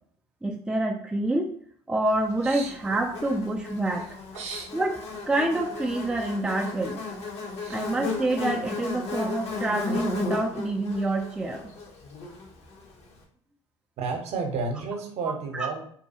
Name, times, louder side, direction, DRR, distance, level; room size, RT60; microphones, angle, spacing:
voice 1, 0.4-1.5 1.9-4.1 4.7-4.9 5.3-7.0 7.7-11.7 15.5-15.7, right 2 dB, 5° right, 0 dB, 0.3 m, -27 dB
Buzz, 2.4-12.8, left 3 dB, 45° left, 0.8 m, -35 dB
voice 2, 4.3-4.7 7.6-7.7 14.0-15.8, right 4 dB, 45° right, 3 dB, 0.7 m, -32 dB
2.6 x 2.2 x 2.8 m, 0.62 s
hypercardioid pair, 65°, 15 cm